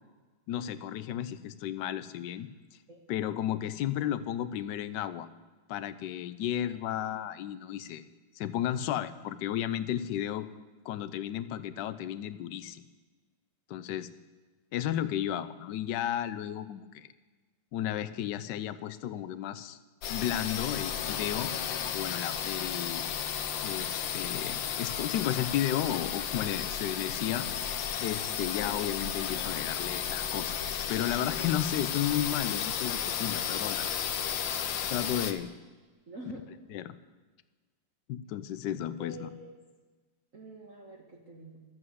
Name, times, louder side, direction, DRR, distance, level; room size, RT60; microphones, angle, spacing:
voice 1, 0.5-2.5 3.1-5.3 5.7-8.0 8.3-10.5 10.8-12.8 13.7-14.1 14.7-17.1 17.7-19.8 20.1-21.5 21.9-23.0 23.6-27.5 28.0-30.6 30.9-33.9 34.9-35.5 36.7-37.0 38.1-39.3, left 11 dB, 75° left, 14 dB, 1.2 m, -33 dB
sound 1, 20.0-35.3, left 8 dB, 90° left, 1.6 m, -33 dB
voice 2, 36.1-36.5 39.0-39.5 40.3-41.6, right 1 dB, 45° right, -2 dB, 1.8 m, -46 dB
12.5 x 8.1 x 7.8 m, 1.3 s
omnidirectional pair, 2.0 m